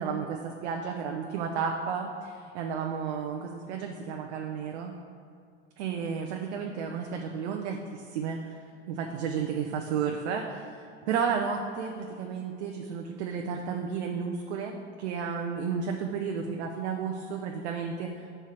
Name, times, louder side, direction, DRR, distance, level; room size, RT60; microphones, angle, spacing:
voice 1, 0.0-4.9 5.8-8.6 8.9-18.2, right 6 dB, 75° right, 2 dB, 0.6 m, -32 dB
5.5 x 4.4 x 6.2 m, 2.3 s
hypercardioid pair, 90°, 33 cm